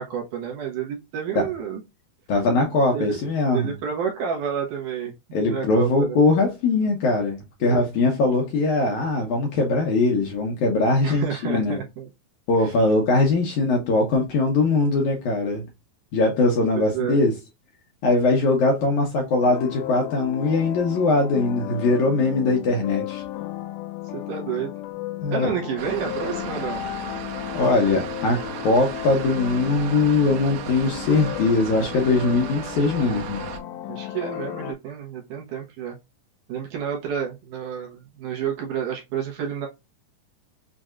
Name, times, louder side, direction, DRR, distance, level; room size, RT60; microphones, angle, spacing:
voice 1, 0.0-1.8 2.9-3.2 3.5-6.2 7.6-7.8 11.0-12.1 12.6-12.7 16.7-17.2 24.1-24.7 25.3-26.8 33.9-36.0 36.5-39.7, right 8 dB, 70° right, 2.4 m, -30 dB
voice 2, 2.3-3.7 5.3-11.8 12.5-15.7 16.1-17.3 18.0-23.2 25.2-25.5 27.5-33.4, left 3 dB, 70° left, 1.9 m, -21 dB
sound 1, 19.4-34.7, left 14 dB, 90° left, 2.5 m, -34 dB
sound 2, 25.8-33.6, right 8 dB, 85° right, 1.7 m, -36 dB
6.3 x 2.7 x 2.3 m
omnidirectional pair, 4.3 m